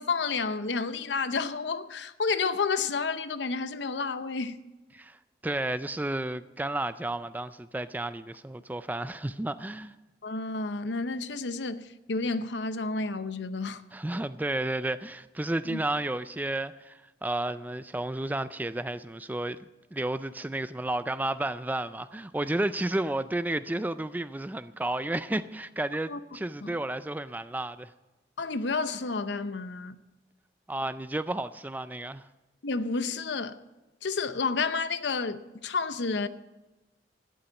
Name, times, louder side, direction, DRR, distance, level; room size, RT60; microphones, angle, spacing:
voice 1, 0.0-4.6 10.2-13.8 15.6-15.8 26.1-26.2 26.6-26.7 28.4-30.0 32.6-33.6 34.0-36.3, left 4 dB, 80° left, 0.7 m, -30 dB
voice 2, 5.4-9.9 13.9-19.6 19.9-27.9 30.7-32.3, right 1 dB, 10° right, 0.3 m, -32 dB
12.5 x 11.0 x 7.0 m
head